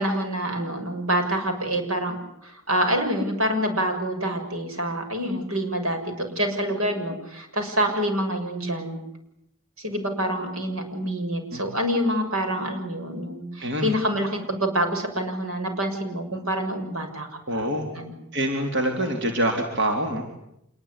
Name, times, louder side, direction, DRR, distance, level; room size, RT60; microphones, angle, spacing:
voice 1, 0.0-2.2 2.4-9.0 9.8-17.7 17.9-18.1, equal, 85° right, 5 dB, 6.8 m, -27 dB
voice 2, 17.5-17.9 18.3-20.2, right 1 dB, 55° right, 3 dB, 3.8 m, -25 dB
27.0 x 21.5 x 9.9 m, 0.79 s
head